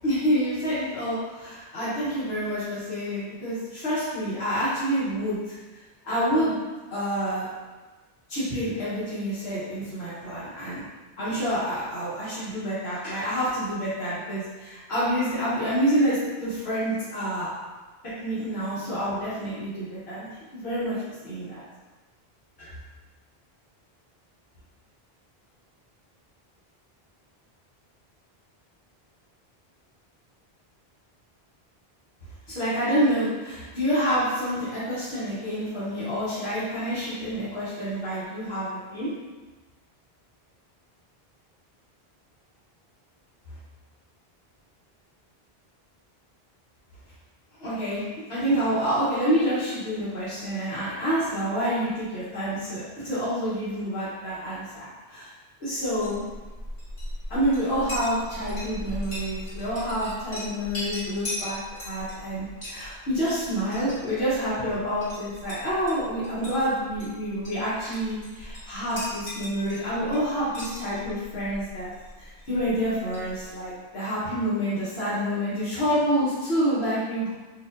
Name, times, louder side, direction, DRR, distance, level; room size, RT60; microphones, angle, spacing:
voice 1, 0.0-5.5 6.0-6.5 6.9-7.5 8.3-10.8 11.2-17.5 18.2-20.3 20.5-21.0 21.2-21.6 22.6-22.7 32.5-39.1 47.6-48.0 48.3-55.3 55.6-56.2 57.3-71.9 72.2-77.3, equal, 80° left, -11 dB, 1.3 m, -28 dB
Chink clink, 55.8-73.7, left 1 dB, 45° left, 1.7 m, -39 dB
4.7 x 2.6 x 2.5 m, 1.2 s
omnidirectional pair, 1.1 m